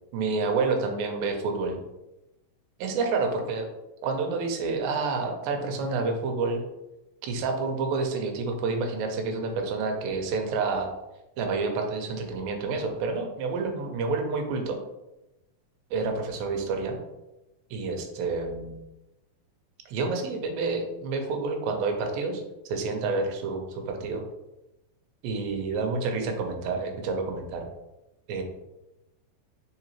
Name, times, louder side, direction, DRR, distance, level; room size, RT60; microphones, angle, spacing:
voice 1, 0.1-1.8 2.8-3.7 4.0-6.6 7.2-10.9 11.4-14.8 15.9-17.0 17.7-18.8 19.9-24.2 25.2-27.7 28.3-28.4, right 4 dB, 85° right, 3 dB, 2.4 m, -29 dB
4.8 x 3.8 x 2.9 m, 0.96 s
omnidirectional pair, 4.1 m